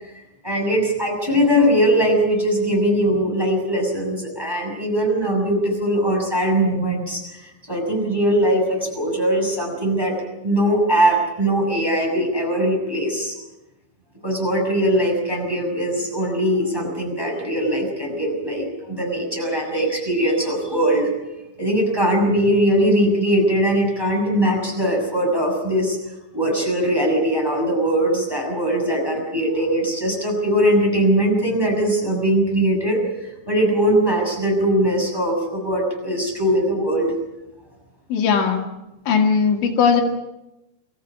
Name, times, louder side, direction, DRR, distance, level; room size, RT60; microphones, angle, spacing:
voice 1, 0.4-7.2 7.7-10.1 10.4-13.3 14.2-21.1 21.6-26.0 26.3-33.0 33.5-37.1, equal, 5° right, -1 dB, 6.4 m, -20 dB
voice 2, 38.1-38.6 39.1-40.0, left 6 dB, 80° left, 2 dB, 4.5 m, -18 dB
25.5 x 14.5 x 8.5 m, 0.96 s
omnidirectional pair, 5.4 m